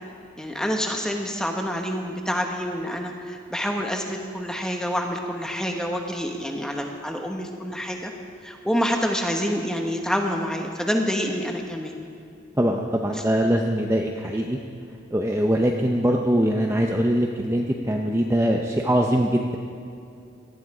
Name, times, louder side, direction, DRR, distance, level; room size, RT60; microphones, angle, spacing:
voice 1, 0.4-8.1 8.4-11.9, equal, 5° left, 2 dB, 1.3 m, -27 dB
voice 2, 12.6-14.6 15.1-19.6, equal, 15° right, 0 dB, 0.7 m, -22 dB
18.5 x 13.0 x 4.9 m, 2.5 s
head